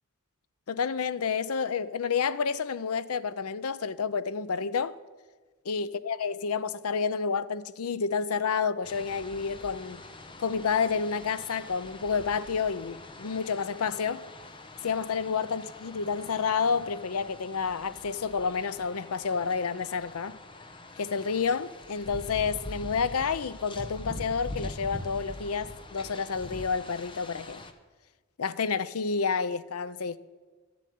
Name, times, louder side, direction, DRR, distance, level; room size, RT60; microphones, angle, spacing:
voice 1, 0.7-4.9 5.6-10.0 10.4-14.2 14.8-20.4 21.0-27.6 28.4-30.2, left 5 dB, 80° left, 0.6 m, -29 dB
sound 1, 8.8-27.7, left 2 dB, 20° left, 0.9 m, -44 dB
13.0 x 7.6 x 9.3 m
head